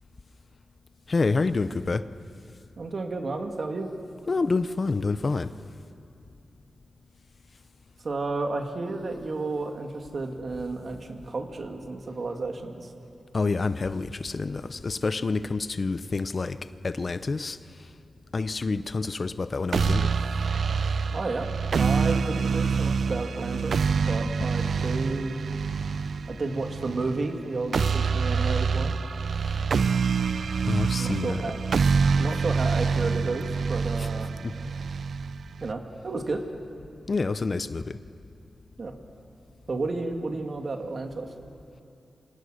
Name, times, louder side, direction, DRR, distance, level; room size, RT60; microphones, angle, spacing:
voice 1, 1.1-2.1 4.3-5.5 13.3-16.6 16.8-17.6 18.3-20.1 30.6-31.4 34.4-34.5 37.1-38.0, left 3 dB, 40° left, 13 dB, 0.7 m, -27 dB
voice 2, 2.8-3.9 8.0-12.9 21.1-21.5 21.8-25.4 26.3-28.9 31.0-31.7 32.2-34.3 35.6-36.4 38.8-38.9 39.7-41.3, right 3 dB, 50° right, 4 dB, 2.5 m, -32 dB
sound 1, 19.7-35.7, right 5 dB, 70° right, 0.5 m, -26 dB
29.0 x 26.5 x 6.6 m, 2.5 s
wide cardioid pair, 105°, 0 cm